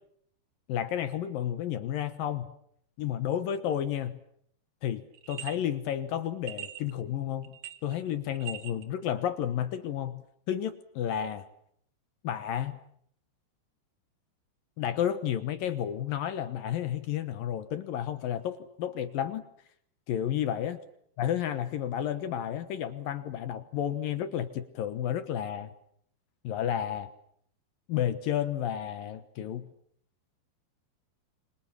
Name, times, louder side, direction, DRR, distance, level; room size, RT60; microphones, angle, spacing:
voice 1, 0.7-2.5 3.0-4.2 4.8-5.0 5.3-7.6 7.8-11.4 12.2-12.8 14.8-19.4 20.1-20.8 21.2-25.7 26.4-27.1 27.9-29.7, left 10 dB, 70° left, 11 dB, 2.4 m, -31 dB
sound 1, 5.1-5.6 6.5-6.9 7.4-8.1 8.3-8.8, right 12 dB, 75° right, 1.5 m, -41 dB
27.5 x 25.5 x 7.4 m, 0.68 s
omnidirectional pair, 5.3 m